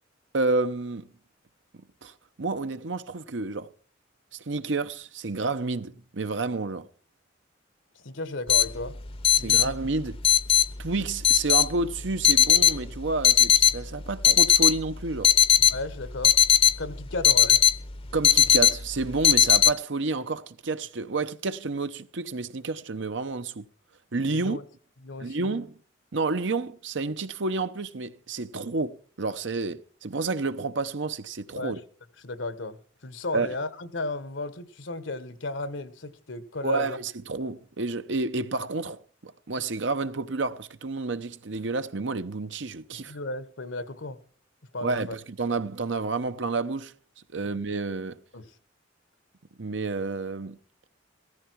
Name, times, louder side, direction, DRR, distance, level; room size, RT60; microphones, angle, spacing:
voice 1, 0.3-1.1 2.0-2.1 2.4-3.7 4.3-6.9 9.4-10.2 10.8-15.3 18.1-23.6 24.1-24.6 25.2-25.8 26.1-31.8 33.3-33.5 36.6-43.2 44.8-46.9 47.3-48.2 49.6-50.6, right 3 dB, 75° right, 0.9 m, -30 dB
voice 2, 8.0-9.0 9.4-9.7 15.7-16.4 16.8-17.6 24.3-24.6 25.0-25.6 31.6-31.7 32.2-32.8 33.0-37.0 42.9-44.2 44.7-45.1 48.3-48.5, left 2 dB, 85° left, 1.4 m, -34 dB
sound 1, 8.5-19.7, left 10 dB, 30° left, 0.7 m, -19 dB
16.5 x 14.0 x 4.6 m
head